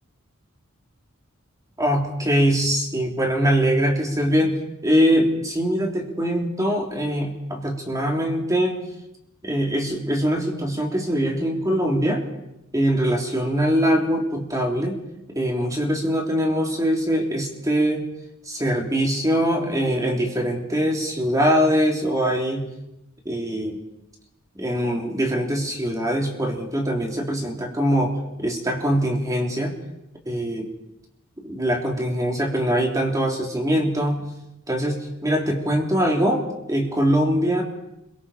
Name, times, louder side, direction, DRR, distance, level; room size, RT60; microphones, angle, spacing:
voice 1, 1.8-4.5 4.8-8.8 9.4-12.2 12.7-15.0 15.3-18.0 18.5-22.7 23.2-23.8 24.5-29.7 30.2-30.7 31.4-34.2 34.7-37.6, equal, 15° right, 1 dB, 3.3 m, -22 dB
29.0 x 23.0 x 4.4 m, 0.90 s
head